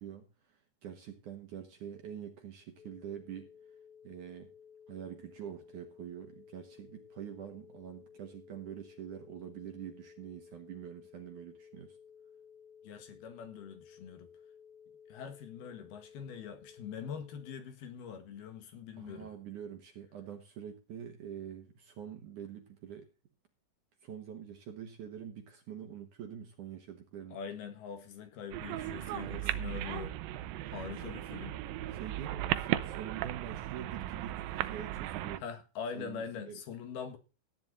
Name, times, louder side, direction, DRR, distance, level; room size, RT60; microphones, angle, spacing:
voice 1, 0.0-3.5 4.0-4.5 4.9-12.0 19.0-23.1 24.0-27.4 29.1-29.7 30.9-31.2 31.9-35.4 35.9-36.6, right 9 dB, 60° right, 2.3 m, -45 dB
sound 1, 2.8-17.5, left 7 dB, 80° left, 4.5 m, -57 dB
voice 2, 12.8-14.3 15.1-19.3 27.3-30.2 30.7-31.6 35.4-37.2, left 7 dB, 65° left, 3.5 m, -43 dB
sound 2, 28.5-35.4, right 14 dB, 80° right, 2.1 m, -36 dB
15.0 x 10.5 x 4.0 m
omnidirectional pair, 5.0 m